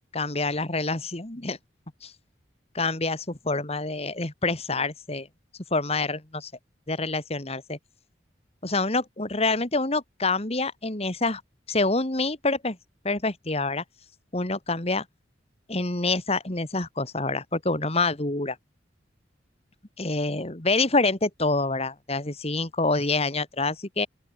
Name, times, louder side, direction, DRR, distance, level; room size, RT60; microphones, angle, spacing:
voice 1, 0.1-1.6 2.0-2.1 2.7-5.3 5.7-6.5 6.9-7.8 8.6-11.4 11.7-12.8 13.0-13.8 14.3-15.0 15.7-18.6 20.0-24.1, left 3 dB, 35° left, 2.2 m, -26 dB
open air
head